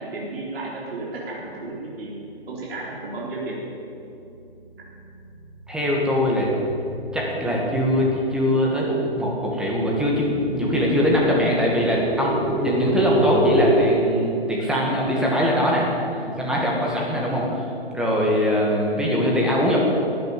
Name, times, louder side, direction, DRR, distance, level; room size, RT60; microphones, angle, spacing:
voice 1, 0.0-2.1 2.5-3.6 14.7-15.0 16.1-16.4 18.8-19.1, right 2 dB, 65° right, -5 dB, 4.2 m, -33 dB
sound 1, 4.0-4.4 4.8-13.7, right 2 dB, 15° left, 4.3 m, -28 dB
voice 2, 5.7-6.5 7.1-15.9 16.4-17.5 17.9-19.9, left 1 dB, ahead, -4 dB, 1.9 m, -22 dB
13.0 x 9.5 x 9.1 m, 2.7 s
hypercardioid pair, 155°, 32 cm